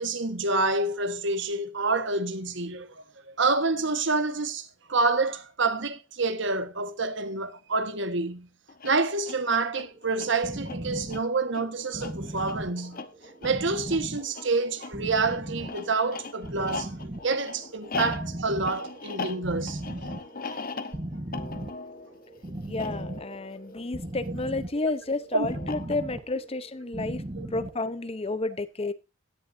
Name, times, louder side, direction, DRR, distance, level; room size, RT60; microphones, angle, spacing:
voice 1, 0.0-3.0 3.4-8.5 8.8-13.0 13.4-19.8 20.4-20.6 25.3-25.5 27.3-27.5, right 3 dB, 65° right, 1.4 m, -28 dB
sound 1, 8.7-24.5 25.5-26.3, left 4 dB, 45° left, 1.0 m, -39 dB
sound 2, 9.8-28.4, right 1 dB, 25° right, 1.0 m, -38 dB
voice 2, 22.7-27.2 27.5-28.9, left 2 dB, 30° left, 0.7 m, -31 dB
16.5 x 11.0 x 2.6 m
head